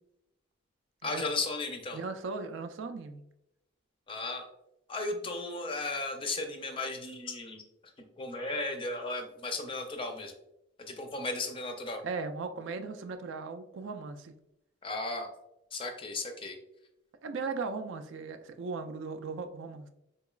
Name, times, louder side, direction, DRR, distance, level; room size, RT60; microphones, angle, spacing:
voice 1, 1.0-2.0 4.1-4.5 4.9-7.6 8.2-10.3 10.9-12.0 14.8-15.3 15.7-16.6, left 2 dB, 25° left, 4 dB, 0.4 m, -35 dB
voice 2, 1.9-3.2 12.0-14.3 17.2-19.9, right 4 dB, 65° right, 8 dB, 0.3 m, -37 dB
3.8 x 2.9 x 2.3 m, 0.84 s
head